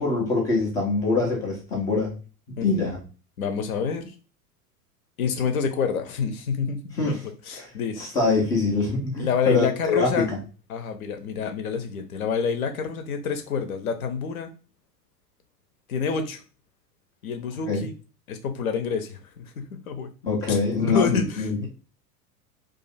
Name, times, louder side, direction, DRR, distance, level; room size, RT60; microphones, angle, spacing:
voice 1, 0.0-2.1 2.6-3.0 7.0-7.2 7.5-7.7 8.0-10.4 17.7-17.8 20.2-21.6, left 3 dB, 10° left, -1 dB, 0.3 m, -24 dB
voice 2, 3.4-4.1 5.2-8.0 9.2-10.3 10.7-14.5 15.9-16.4 17.2-17.9 18.3-20.1 20.5-21.7, left 6 dB, 60° left, 7 dB, 0.7 m, -28 dB
2.5 x 2.4 x 4.1 m, 0.35 s
figure-of-eight pair, 85°, 48 cm